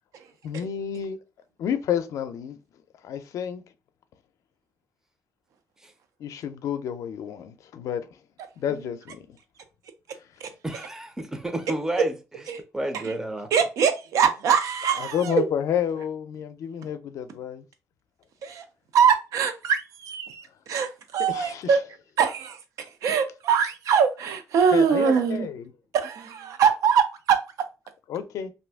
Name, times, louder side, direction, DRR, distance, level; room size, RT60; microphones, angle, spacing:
voice 1, 0.4-1.2 1.6-2.6 3.0-3.7 6.2-8.2 8.6-9.4 15.0-17.6 21.3-21.7 24.7-25.7 28.1-28.5, left 9 dB, 75° left, 0.4 m, -30 dB
voice 2, 10.6-12.2 12.7-13.5, right 1 dB, 10° right, 0.4 m, -30 dB
voice 3, 13.5-15.4 18.4-18.6 18.9-21.8 22.2-22.6 23.0-25.5 25.9-27.4, right 7 dB, 85° right, 0.5 m, -23 dB
2.6 x 2.4 x 3.4 m
cardioid pair, 140°, 6 cm